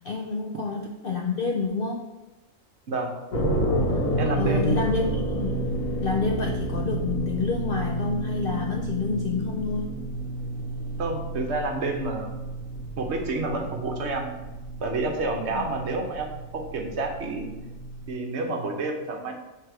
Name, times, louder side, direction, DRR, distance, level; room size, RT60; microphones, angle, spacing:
voice 1, 0.0-2.1 4.4-5.6 6.0-9.9 15.5-15.6, left 4 dB, 65° left, 1 dB, 0.5 m, -28 dB
sound 1, 3.3-18.1, right 1 dB, 85° left, 1.4 m, -30 dB
voice 2, 4.2-4.9 11.0-12.4 13.0-14.3 14.8-17.5 18.1-19.3, right 2 dB, 60° right, 3 dB, 1.0 m, -29 dB
6.3 x 3.3 x 4.5 m, 1.1 s
omnidirectional pair, 1.4 m